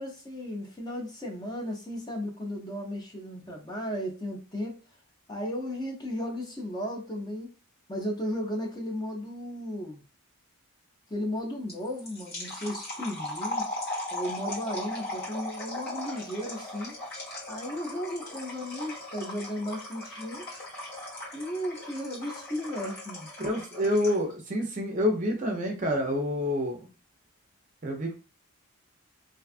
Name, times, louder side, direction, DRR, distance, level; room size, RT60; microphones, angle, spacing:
voice 1, 0.0-4.8 5.3-7.5 7.9-10.0 11.1-13.7 14.1-16.9 17.5-20.6 21.3-23.3, equal, 20° left, -1 dB, 0.5 m, -35 dB
sound 1, 11.7-24.3, left 1 dB, 45° left, 1.2 m, -38 dB
voice 2, 23.4-26.8 27.8-28.1, left 1 dB, 35° right, 2 dB, 0.5 m, -27 dB
2.6 x 2.3 x 2.4 m, 0.34 s
head